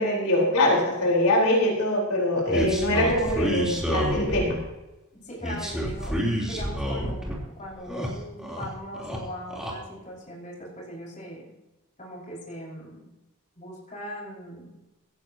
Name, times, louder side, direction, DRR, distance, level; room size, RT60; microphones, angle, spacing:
voice 1, 0.0-4.6, left 1 dB, 85° left, -2 dB, 4.4 m, -23 dB
sound 1, 2.5-4.6 5.4-7.4 7.7-8.7 8.9-9.7, equal, 5° right, 3.6 m, -29 dB
voice 2, 2.9-3.8 5.2-11.5 12.0-13.1 13.6-14.8, right 1 dB, 35° left, -4 dB, 5.8 m, -38 dB
17.0 x 15.5 x 3.0 m, 1.0 s
head